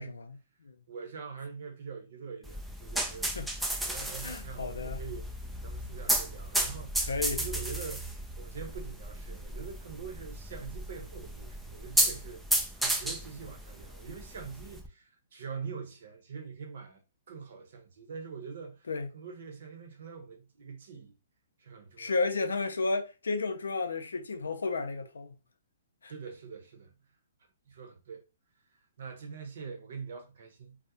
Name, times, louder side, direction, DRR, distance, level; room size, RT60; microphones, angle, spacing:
voice 1, 0.0-0.7 3.4-3.5 4.2-5.0 7.1-7.4 18.9-19.1 22.0-25.4 26.0-26.1, left 3 dB, 85° left, 0.4 m, -32 dB
voice 2, 0.9-3.5 3.8-17.0 17.3-18.9 19.1-21.2 21.6-22.2 26.1-26.9 27.7-28.2 28.7-30.8, right 5 dB, 65° right, 0.8 m, -44 dB
sound 1, 2.5-14.9, right 1 dB, ahead, 0.3 m, -33 dB
2.4 x 2.0 x 2.7 m
hypercardioid pair, 135°, 0 cm